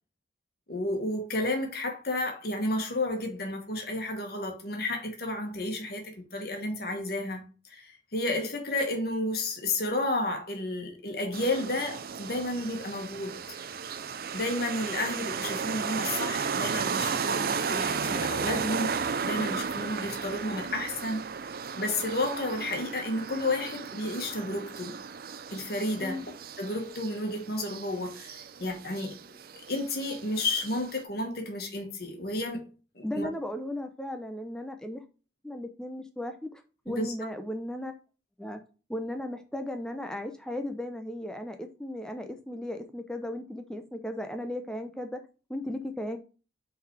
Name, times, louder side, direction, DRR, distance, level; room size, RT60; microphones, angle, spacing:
voice 1, 0.7-13.4 14.3-21.2 21.7-25.0 25.5-26.2 26.6-29.2 29.7-32.6 32.9-33.3 36.9-37.1, left 2 dB, 55° left, 1.5 m, -32 dB
sound 1, 11.3-31.0, right 6 dB, 50° right, 0.4 m, -34 dB
voice 2, 33.0-35.0 35.4-37.9 38.4-38.6 38.9-45.2 45.5-46.2, left 1 dB, 5° left, 0.5 m, -36 dB
5.6 x 4.0 x 4.6 m
head